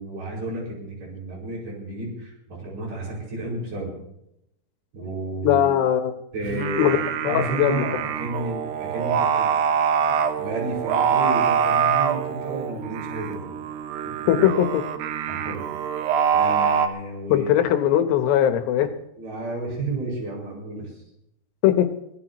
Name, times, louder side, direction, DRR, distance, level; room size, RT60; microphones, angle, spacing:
voice 1, 0.0-4.0 4.9-5.6 6.3-7.0 7.3-9.5 10.4-13.5 14.0-14.5 15.3-15.6 16.3-17.5 19.2-20.9, right 1 dB, 55° right, -2 dB, 7.1 m, -32 dB
voice 2, 5.4-6.1 6.8-7.0 7.2-7.9 14.3-14.8 17.3-18.9 21.6-21.9, left 11 dB, 80° left, 8 dB, 3.0 m, -20 dB
Singing, 6.4-16.9, right 7 dB, 80° right, 3.0 m, -24 dB
24.5 x 17.0 x 3.0 m, 0.81 s
omnidirectional pair, 4.8 m